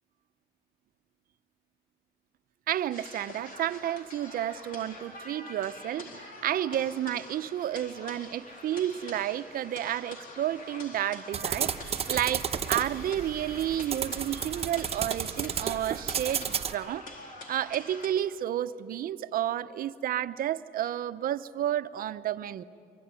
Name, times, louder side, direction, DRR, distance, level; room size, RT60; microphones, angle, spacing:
voice 1, 2.7-17.0 17.5-22.6, right 11 dB, 60° right, 12 dB, 0.8 m, -31 dB
sound 1, 2.9-18.1, left 2 dB, 55° left, 4.0 m, -46 dB
sound 2, 11.3-16.7, right 7 dB, 35° right, 1.0 m, -33 dB
24.5 x 23.0 x 9.7 m, 2.5 s
cardioid pair, 110°, 17 cm